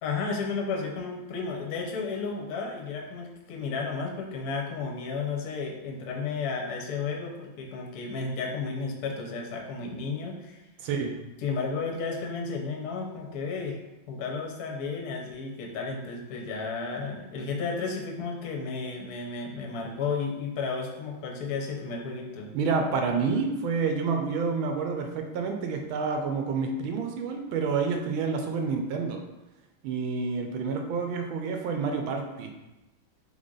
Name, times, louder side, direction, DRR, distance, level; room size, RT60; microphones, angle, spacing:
voice 1, 0.0-10.6 11.4-13.8 14.1-22.5, left 4 dB, 60° left, 1 dB, 1.0 m, -33 dB
voice 2, 10.8-11.1 22.5-29.2 29.8-32.5, right 5 dB, 80° right, 4 dB, 1.4 m, -28 dB
3.9 x 3.3 x 3.7 m, 1.0 s
omnidirectional pair, 2.2 m